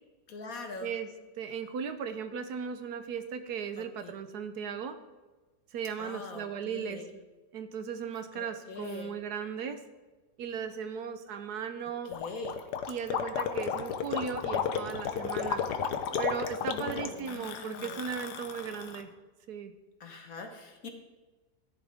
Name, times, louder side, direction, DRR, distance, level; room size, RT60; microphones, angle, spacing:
voice 1, 0.3-1.0 3.8-4.1 6.0-7.1 8.3-9.2 12.0-12.6 16.6-18.0 20.0-20.9, left 3 dB, 55° left, 4 dB, 1.7 m, -43 dB
voice 2, 1.4-5.0 5.7-7.0 7.5-9.8 10.4-12.1 12.9-15.6 16.2-19.1 19.5-19.7, right 7 dB, 70° right, 10 dB, 1.2 m, -37 dB
Gurgling, 12.1-19.0, left 7 dB, 80° left, 1.4 m, -33 dB
14.0 x 11.0 x 3.5 m, 1.2 s
omnidirectional pair, 1.8 m